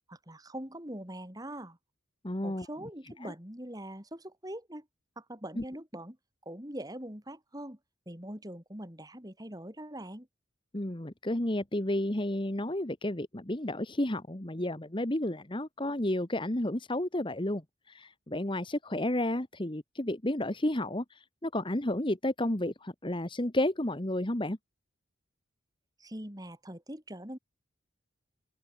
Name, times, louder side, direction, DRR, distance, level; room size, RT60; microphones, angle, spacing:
voice 1, 0.1-1.8 2.4-4.8 5.2-6.2 6.4-7.8 8.1-10.3 26.0-27.4, right 1 dB, 20° right, 4.6 m, -42 dB
voice 2, 2.2-2.7 3.2-3.3 5.6-5.7 10.7-17.6 17.9-21.0 21.4-24.6, left 1 dB, 25° left, 1.4 m, -31 dB
open air
head